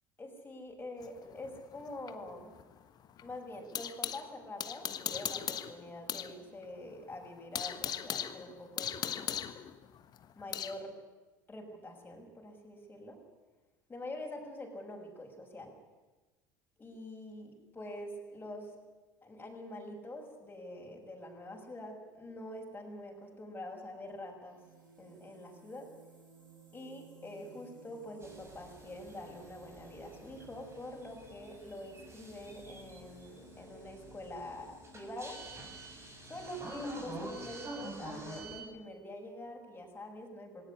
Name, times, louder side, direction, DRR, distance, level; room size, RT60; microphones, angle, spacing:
voice 1, 0.2-2.5 3.2-9.4 10.3-11.0 11.5-13.2 13.9-15.7 16.8-18.8 19.2-24.6 25.0-25.9 26.7-35.4 36.3-40.6, left 1 dB, 15° left, 1 dB, 6.7 m, -45 dB
sound 1, 1.0-4.2 4.6-6.3 6.6-6.7 7.1-10.8, left 9 dB, 40° left, 1.4 m, -38 dB
sound 2, 24.4-37.8, right 2 dB, 90° right, 7.9 m, -58 dB
sound 3, 28.2-38.6, right 2 dB, 25° right, 6.9 m, -47 dB
19.0 x 18.5 x 10.0 m, 1.2 s
figure-of-eight pair, 65°, 11 cm